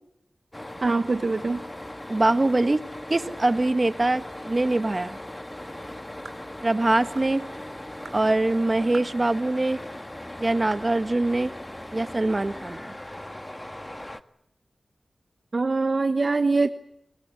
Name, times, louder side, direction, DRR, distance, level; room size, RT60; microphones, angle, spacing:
sound 1, 0.5-14.2, left 1 dB, 20° left, 1.5 m, -39 dB
voice 1, 0.8-1.6 15.5-16.7, right 3 dB, 55° right, 9 dB, 1.1 m, -23 dB
voice 2, 2.1-2.8 3.1-5.2 6.6-7.4 8.1-9.8 10.4-11.5 11.9-12.8, right 2 dB, 40° right, 10 dB, 1.7 m, -23 dB
sound 2, 6.2-6.5 7.2-7.3 8.0-8.2 8.9-9.2 9.8-9.9 10.7-10.9, right 4 dB, 70° right, 2.6 m, -43 dB
28.5 x 19.5 x 8.3 m, 0.83 s
cardioid pair, 45°, 0 cm